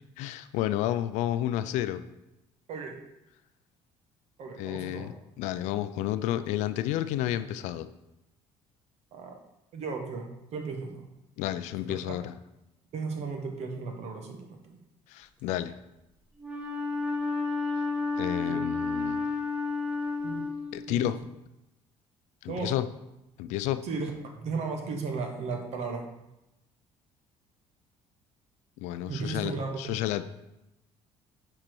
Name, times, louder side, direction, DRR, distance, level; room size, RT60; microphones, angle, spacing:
voice 1, 0.2-2.0 4.6-7.9 11.4-12.3 15.1-15.7 18.2-19.3 20.7-21.2 22.4-22.9 23.4-23.8 28.8-30.2, left 12 dB, 80° left, 12 dB, 0.4 m, -31 dB
voice 2, 4.4-5.1 9.1-9.4 9.7-11.1 12.1-12.2 12.9-14.8 18.5-18.6 20.2-20.4 20.9-21.1 22.5-22.7 23.8-26.0 29.1-29.9, right 4 dB, 65° right, 3 dB, 1.4 m, -35 dB
Wind instrument woodwind instrument, 16.4-21.1, left 3 dB, 10° right, 1.5 m, -31 dB
7.5 x 4.3 x 4.6 m, 0.91 s
supercardioid pair, 85°, 12 cm